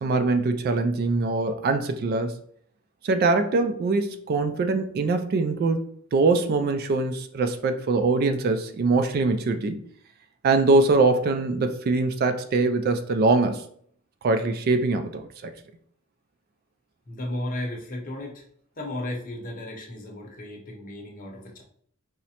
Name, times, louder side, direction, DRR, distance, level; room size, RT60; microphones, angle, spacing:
voice 1, 0.0-2.4 3.0-5.8 6.1-9.8 10.4-13.6 14.2-15.5, right 3 dB, 45° right, 8 dB, 0.3 m, -23 dB
voice 2, 17.1-18.4 18.8-21.6, left 1 dB, 40° left, -1 dB, 0.8 m, -34 dB
4.8 x 2.1 x 2.8 m, 0.62 s
head